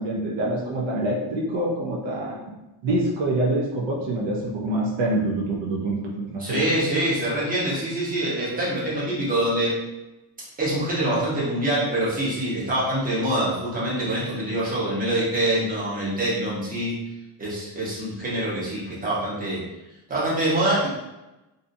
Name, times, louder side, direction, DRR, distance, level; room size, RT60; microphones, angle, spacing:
voice 1, 0.0-2.4 2.8-6.8, right 1 dB, 70° right, -3 dB, 0.7 m, -26 dB
voice 2, 6.4-9.7 10.6-17.0 17.4-19.6 20.1-20.9, right 1 dB, 20° right, -8 dB, 0.9 m, -25 dB
2.7 x 2.4 x 2.6 m, 1.0 s
cardioid pair, 150°, 47 cm